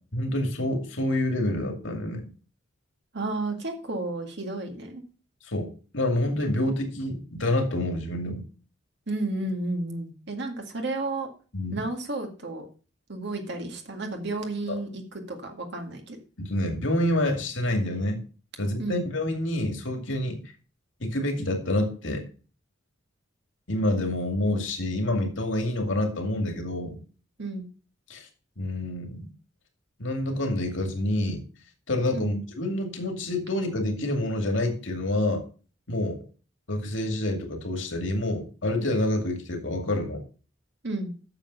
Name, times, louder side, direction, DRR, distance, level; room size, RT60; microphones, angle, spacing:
voice 1, 0.1-2.2 5.5-5.7 5.9-8.5 11.5-11.8 14.7-14.8 16.4-18.2 18.6-20.4 21.0-22.2 23.7-27.0 28.1-28.3 28.6-29.3 30.0-31.4 31.9-35.4 35.9-36.2 36.7-40.2, left 1 dB, 70° left, 3 dB, 2.4 m, -27 dB
voice 2, 3.1-5.0 9.1-11.3 11.7-12.7 13.1-16.2 18.8-19.1 27.4-27.7 32.1-32.3 40.8-41.1, right 2 dB, 60° right, 3 dB, 2.0 m, -32 dB
9.0 x 7.2 x 5.5 m, 0.38 s
head